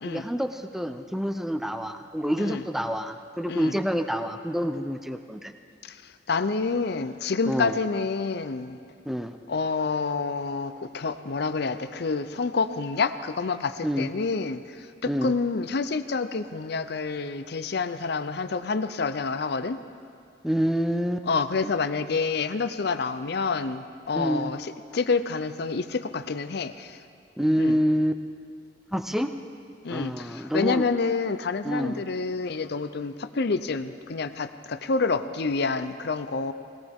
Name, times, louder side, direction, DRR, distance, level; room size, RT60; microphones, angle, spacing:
voice 1, 0.0-5.5 7.5-7.8 9.1-9.4 13.8-14.1 15.1-15.3 20.4-21.3 21.6-21.7 24.1-24.5 27.4-28.1 28.9-29.3 29.9-30.9 31.6-32.0, equal, ahead, 8 dB, 0.6 m, -27 dB
voice 2, 5.8-8.8 9.5-19.8 21.3-27.0 27.6-27.8 29.8-36.5, left 4 dB, 65° left, 11 dB, 0.6 m, -28 dB
20.0 x 17.0 x 3.6 m, 2.3 s
head